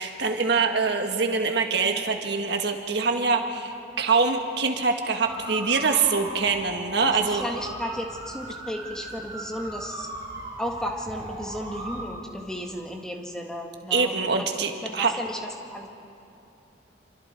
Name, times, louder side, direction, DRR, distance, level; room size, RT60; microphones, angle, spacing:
voice 1, 0.0-3.7 4.0-7.4 13.9-15.1, right 4 dB, 60° right, 4 dB, 1.7 m, -24 dB
sound 1, 5.2-12.0, right 1 dB, 20° right, 6.0 m, -38 dB
voice 2, 7.1-10.1 10.6-14.5 14.8-15.4 15.7-15.9, equal, 5° left, 1 dB, 1.8 m, -34 dB
27.0 x 26.0 x 4.5 m, 2.8 s
head